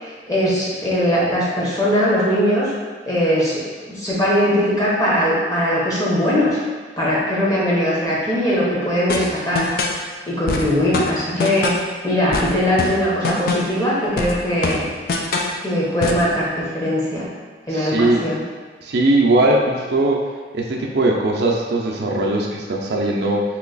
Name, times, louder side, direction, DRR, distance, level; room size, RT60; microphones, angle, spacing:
voice 1, 0.0-2.7 3.1-3.6 3.9-6.6 7.0-9.6 10.3-11.7 12.0-14.9 15.6-17.2 17.7-18.4, equal, 20° left, -7 dB, 0.9 m, -20 dB
sound 1, 9.1-10.0 10.5-11.9 12.3-13.8 14.2-15.6 16.0-16.3, left 3 dB, 55° left, 0.3 m, -24 dB
voice 2, 17.7-18.2 18.8-20.2 20.5-23.4, right 2 dB, 60° right, -1 dB, 0.5 m, -19 dB
3.1 x 2.9 x 3.9 m, 1.4 s
head